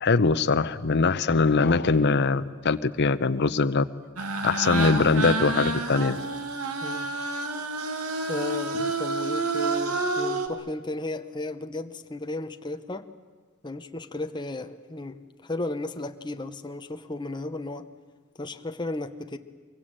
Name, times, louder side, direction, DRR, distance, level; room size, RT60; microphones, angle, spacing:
voice 1, 0.0-3.8 4.4-6.2, left 4 dB, 50° left, 11 dB, 0.8 m, -22 dB
sound 1, 4.2-10.5, right 3 dB, 90° right, 2.1 m, -29 dB
voice 2, 6.8-7.1 8.3-13.1 13.6-17.9 18.4-19.4, left 2 dB, 20° left, 7 dB, 0.9 m, -34 dB
24.0 x 23.0 x 8.9 m, 1.5 s
head